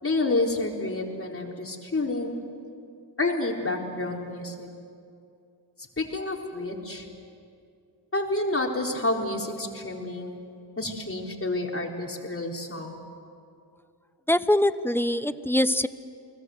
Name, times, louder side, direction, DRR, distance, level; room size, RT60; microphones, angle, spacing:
voice 1, 0.0-2.4 3.2-4.7 6.0-7.1 8.1-10.4 10.8-13.0, left 2 dB, 30° left, 1 dB, 4.0 m, -29 dB
voice 2, 14.3-15.9, left 1 dB, 5° left, 13 dB, 0.8 m, -23 dB
29.5 x 21.0 x 8.0 m, 2.4 s
cardioid pair, 70°, 43 cm